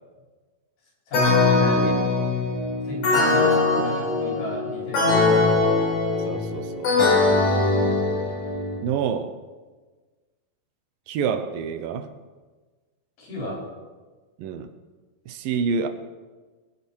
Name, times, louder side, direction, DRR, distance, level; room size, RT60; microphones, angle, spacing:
voice 1, 1.1-2.0 2.8-5.4 13.2-13.6, left 2 dB, 80° left, -5 dB, 7.0 m, -34 dB
sound 1, 1.1-8.8, left 3 dB, 60° left, 5.0 m, -21 dB
voice 2, 6.3-6.9 8.8-9.4 11.1-12.1 14.4-14.7 15.3-15.9, right 6 dB, 75° right, 9 dB, 2.5 m, -27 dB
23.5 x 8.6 x 4.5 m, 1.3 s
omnidirectional pair, 4.2 m